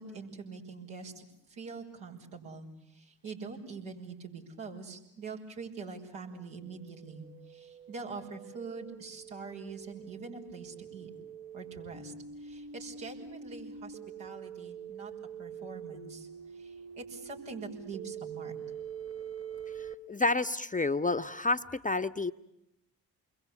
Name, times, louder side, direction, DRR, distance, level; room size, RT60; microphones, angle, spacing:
voice 1, 0.0-11.1 11.5-15.1 15.4-18.6, right 4 dB, 75° right, -1 dB, 5.9 m, -44 dB
sound 1, 6.7-19.9, right 7 dB, 30° right, 2.2 m, -45 dB
voice 2, 19.8-22.3, left 3 dB, 15° left, 8 dB, 1.0 m, -30 dB
29.0 x 22.5 x 8.5 m, 0.85 s
hypercardioid pair, 45°, 48 cm